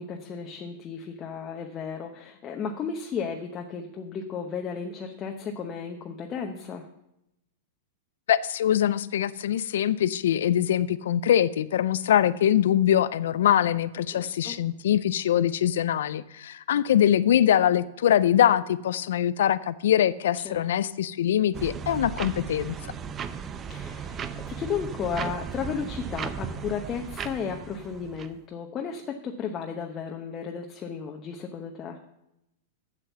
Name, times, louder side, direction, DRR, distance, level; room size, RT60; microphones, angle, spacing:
voice 1, 0.0-6.8 14.1-14.6 20.4-20.6 23.7-32.0, left 6 dB, 30° left, 3 dB, 0.9 m, -34 dB
voice 2, 8.3-22.8, left 10 dB, 70° left, 17 dB, 0.4 m, -23 dB
sound 1, 21.5-28.3, right 7 dB, 25° right, 0.7 m, -36 dB
7.9 x 7.6 x 6.8 m, 0.86 s
hypercardioid pair, 110°, 0 cm